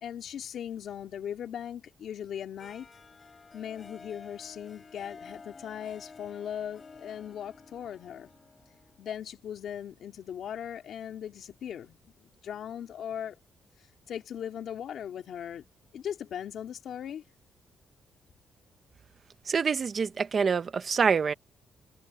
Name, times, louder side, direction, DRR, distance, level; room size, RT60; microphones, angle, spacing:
voice 1, 0.0-2.9 3.5-8.3 9.0-13.4 14.1-15.6 15.9-17.2, left 9 dB, 60° left, 3.0 m, -39 dB
Harp, 2.6-9.5, left 4 dB, 25° left, 4.3 m, -51 dB
voice 2, 19.5-21.3, right 6 dB, 35° right, 1.1 m, -26 dB
cardioid pair, 170°, 0 cm